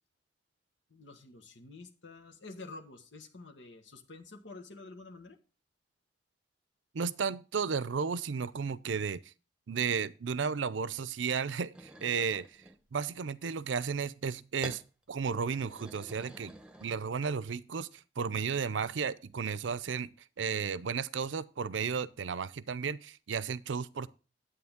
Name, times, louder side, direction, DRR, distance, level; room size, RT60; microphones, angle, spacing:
voice 1, 0.9-5.4, left 3 dB, 85° left, 1.5 m, -49 dB
voice 2, 6.9-9.3 9.7-12.6 12.9-14.8 15.1-16.5 16.8-20.1 20.4-24.1, right 6 dB, 85° right, 0.5 m, -33 dB
sound 1, 11.7-12.8 14.6-14.9 15.4-17.3, right 1 dB, 5° right, 0.9 m, -49 dB
9.6 x 8.6 x 3.6 m
head